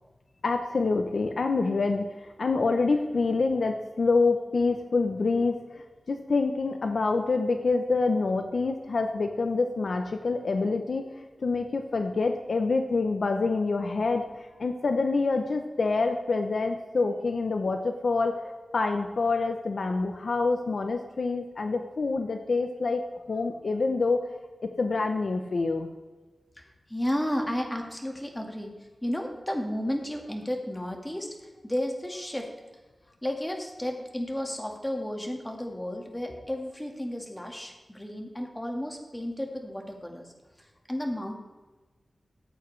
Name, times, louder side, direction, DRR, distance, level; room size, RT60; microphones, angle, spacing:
voice 1, 0.4-2.0 2.4-11.1 11.4-23.0 23.3-24.2 24.8-25.9, left 3 dB, 70° left, 5 dB, 0.7 m, -26 dB
voice 2, 26.9-28.7 29.0-31.3 31.6-32.4 33.2-40.3 40.9-41.3, equal, 10° left, 2 dB, 1.7 m, -32 dB
14.5 x 8.1 x 3.2 m, 1.2 s
wide cardioid pair, 90°, 0 cm